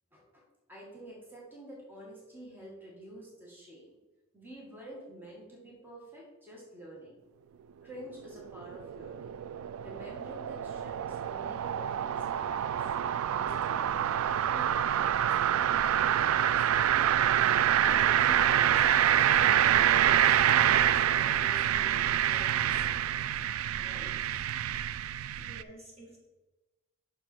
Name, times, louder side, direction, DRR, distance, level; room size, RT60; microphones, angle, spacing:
voice 1, 0.1-0.4 0.7-4.0 4.3-7.2 7.8-9.4 9.8-12.9 13.4-17.3 17.8-19.3 19.8-23.1 23.7-24.1, right 1 dB, 10° right, -5 dB, 1.8 m, -49 dB
sound 1, 8.0-25.6, right 10 dB, 85° right, 0.3 m, -26 dB
voice 2, 24.5-26.2, right 1 dB, 30° right, -3 dB, 1.9 m, -53 dB
6.8 x 6.2 x 4.4 m, 1.1 s
head